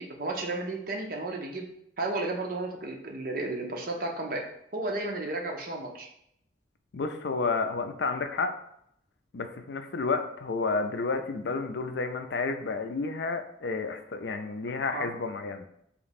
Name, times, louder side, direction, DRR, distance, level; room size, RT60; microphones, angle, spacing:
voice 1, 0.0-1.7 2.0-4.5 4.7-6.1 14.9-15.1, right 2 dB, 50° right, 1 dB, 0.7 m, -33 dB
voice 2, 6.9-8.5 9.3-15.6, left 4 dB, 70° left, 7 dB, 0.4 m, -31 dB
3.3 x 3.0 x 4.1 m, 0.72 s
head